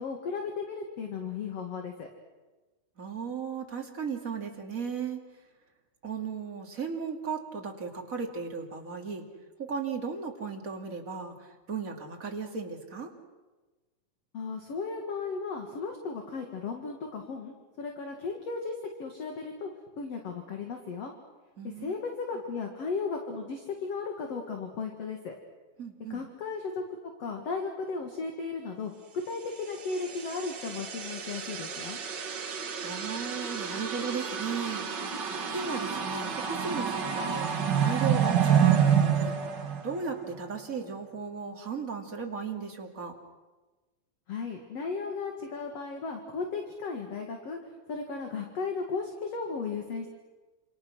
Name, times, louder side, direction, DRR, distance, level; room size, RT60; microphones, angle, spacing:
voice 1, 0.0-2.1 14.3-19.7 20.0-21.1 21.8-25.3 26.1-26.8 27.2-28.9 29.3-32.0 44.3-47.6 47.9-50.1, left 4 dB, 45° left, 3 dB, 2.7 m, -35 dB
voice 2, 3.0-5.2 6.0-9.2 9.6-13.1 21.6-21.9 25.8-26.2 32.8-34.9 35.5-37.5 37.8-39.4 39.8-43.1, right 5 dB, 25° right, 2 dB, 2.3 m, -36 dB
sound 1, 29.7-40.4, right 8 dB, 55° right, 1.2 m, -29 dB
29.0 x 28.0 x 6.3 m, 1.2 s
omnidirectional pair, 4.4 m